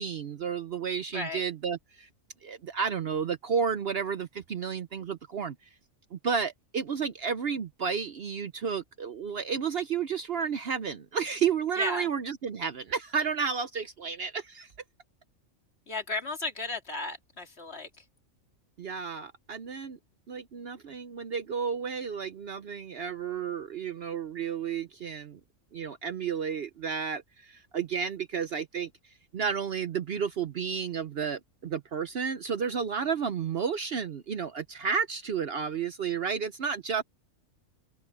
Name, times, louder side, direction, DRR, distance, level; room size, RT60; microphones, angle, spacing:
voice 1, 0.0-2.1 2.4-5.6 6.1-14.7 18.8-20.0 20.3-25.4 25.7-37.0, right 6 dB, 55° right, 0.8 m, -32 dB
voice 2, 11.8-12.1 15.9-18.0, left 3 dB, 50° left, 2.5 m, -35 dB
open air
omnidirectional pair, 1.4 m